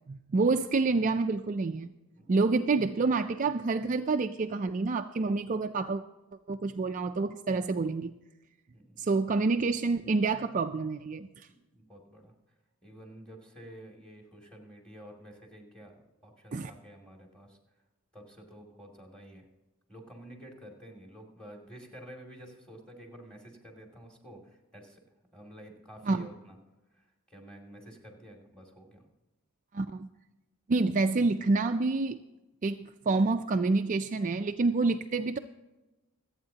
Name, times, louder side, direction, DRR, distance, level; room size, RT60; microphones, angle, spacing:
voice 1, 0.1-1.9 2.3-6.0 6.5-8.1 9.0-11.5 16.5-16.7 26.1-26.3 29.7-30.1 30.7-32.2 32.6-35.4, right 3 dB, 35° right, 6 dB, 0.4 m, -28 dB
voice 2, 8.7-9.1 11.5-12.3 12.8-15.9 16.2-17.6 18.1-19.5 19.9-25.0 25.3-26.6 26.9-29.0, equal, 5° left, 1 dB, 2.5 m, -50 dB
26.0 x 8.8 x 2.8 m, 1.1 s
head